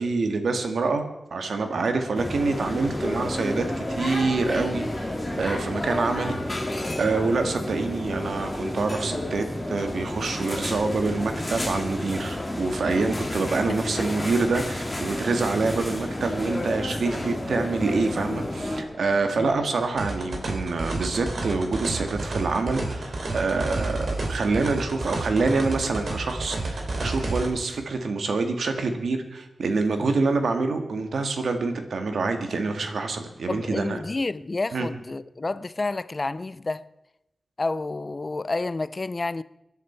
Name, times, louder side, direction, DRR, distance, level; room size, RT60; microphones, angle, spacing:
voice 1, 0.0-6.7 7.0-34.0 34.7-34.9, right 3 dB, 85° right, 1.9 m, -26 dB
sound 1, 2.1-18.8, left 1 dB, 15° left, 2.8 m, -31 dB
sound 2, 9.8-26.5, left 2 dB, 55° left, 2.1 m, -45 dB
sound 3, 20.0-27.5, right 2 dB, 65° right, 3.1 m, -30 dB
voice 2, 33.5-36.9 37.6-39.4, left 3 dB, 35° left, 0.4 m, -30 dB
24.0 x 11.0 x 4.5 m
wide cardioid pair, 110°, 0 cm